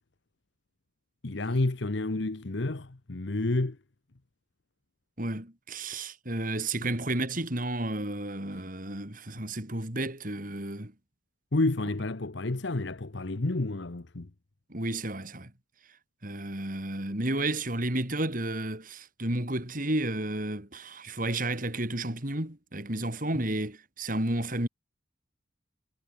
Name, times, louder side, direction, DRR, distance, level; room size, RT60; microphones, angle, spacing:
voice 1, 1.2-3.8 11.5-14.3, left 2 dB, 60° left, 1.0 m, -30 dB
voice 2, 5.2-10.9 14.7-15.5 16.2-24.7, right 1 dB, 40° right, 3.6 m, -32 dB
head